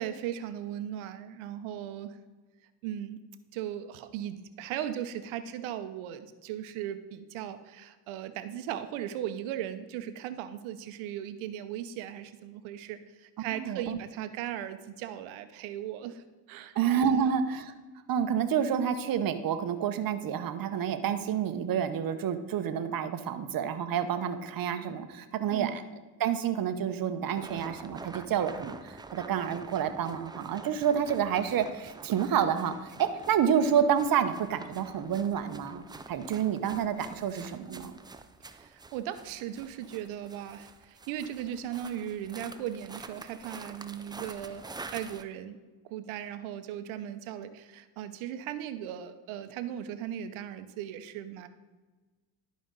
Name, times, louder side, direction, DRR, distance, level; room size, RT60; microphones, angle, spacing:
voice 1, 0.0-2.2 2.8-3.2 3.5-16.7 17.1-17.3 25.5-25.8 38.5-44.6 44.9-45.6 45.8-51.5, right 10 dB, 80° right, 10 dB, 0.8 m, -37 dB
voice 2, 13.5-14.0 16.7-17.7 18.1-25.8 26.2-37.9, right 8 dB, 45° right, 9 dB, 0.9 m, -29 dB
sound 1, 27.3-45.2, right 3 dB, 10° right, 0.3 m, -47 dB
11.0 x 5.1 x 3.9 m, 1.3 s
supercardioid pair, 80°, 47 cm